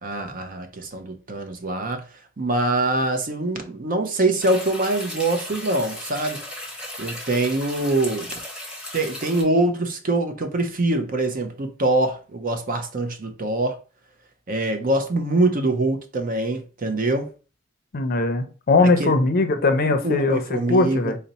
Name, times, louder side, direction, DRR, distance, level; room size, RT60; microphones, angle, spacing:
voice 1, 0.0-2.0 2.4-6.4 7.0-8.3 8.9-13.8 14.5-17.3 18.8-19.1 19.8-21.0, right 2 dB, 45° right, 0.6 m, -24 dB
sound 1, 4.4-9.4, left 1 dB, 5° right, 1.0 m, -36 dB
voice 2, 17.9-20.4 20.7-21.2, left 3 dB, 50° left, 0.5 m, -20 dB
4.0 x 2.0 x 4.0 m
head